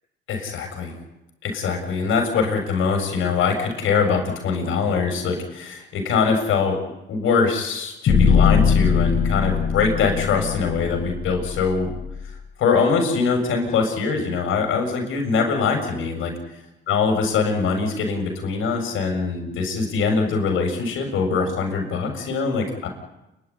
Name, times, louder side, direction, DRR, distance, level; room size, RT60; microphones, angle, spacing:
voice 1, 0.3-0.9 1.4-6.8 7.1-11.9 12.6-16.3 16.9-22.9, left 5 dB, 85° left, 3 dB, 7.1 m, -23 dB
sound 1, 8.1-12.3, left 6 dB, 65° left, 7.2 m, -21 dB
29.5 x 12.0 x 10.0 m, 0.92 s
supercardioid pair, 60°, 20 cm